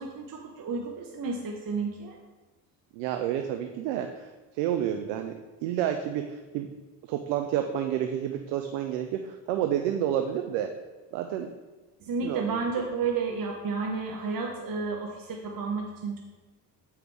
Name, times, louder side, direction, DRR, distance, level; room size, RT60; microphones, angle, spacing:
voice 1, 0.0-2.2 12.0-16.2, right 4 dB, 45° right, 1 dB, 1.0 m, -31 dB
voice 2, 2.9-5.3 5.6-6.7 7.0-10.7 11.1-11.5 12.2-12.6, right 10 dB, 80° right, 6 dB, 0.6 m, -30 dB
7.2 x 4.9 x 4.7 m, 1.2 s
hypercardioid pair, 55°, 49 cm